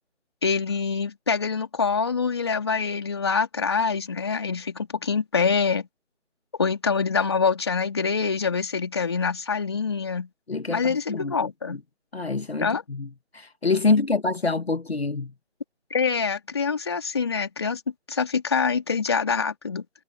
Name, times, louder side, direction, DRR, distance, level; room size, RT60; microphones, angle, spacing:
voice 1, 0.4-5.9 6.6-10.3 10.7-11.8 12.6-12.8 15.9-17.8 18.1-19.8, left 5 dB, 20° left, 3.2 m, -25 dB
voice 2, 10.5-11.8 12.1-15.3, left 3 dB, 60° left, 2.0 m, -26 dB
figure-of-eight pair, 175°, 36 cm